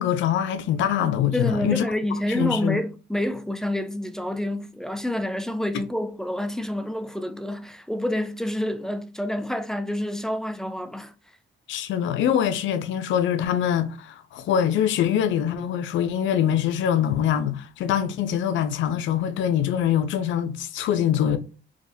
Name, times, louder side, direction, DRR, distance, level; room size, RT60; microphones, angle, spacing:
voice 1, 0.0-1.8 2.3-2.8 11.7-21.4, left 9 dB, 70° left, 0.4 m, -24 dB
voice 2, 1.3-11.1, left 1 dB, 5° left, 0.4 m, -28 dB
3.5 x 2.2 x 2.6 m
cardioid pair, 90°, 20 cm